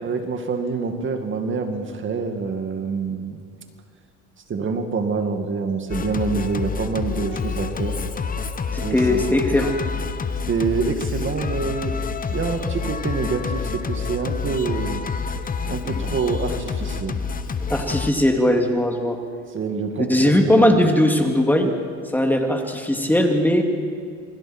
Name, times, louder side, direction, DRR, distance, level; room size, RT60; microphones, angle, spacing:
voice 1, 0.0-3.4 4.5-8.0 8.8-9.2 10.5-15.0 15.7-17.2 19.5-20.8, right 4 dB, 35° right, 5 dB, 2.2 m, -26 dB
Singing, 5.9-18.1, left 5 dB, 25° left, 1.1 m, -28 dB
voice 2, 8.7-9.7 17.7-19.2 20.1-21.7 22.1-23.6, left 1 dB, 5° left, 2 dB, 2.6 m, -19 dB
28.0 x 21.5 x 4.5 m, 2.2 s
supercardioid pair, 105°, 35 cm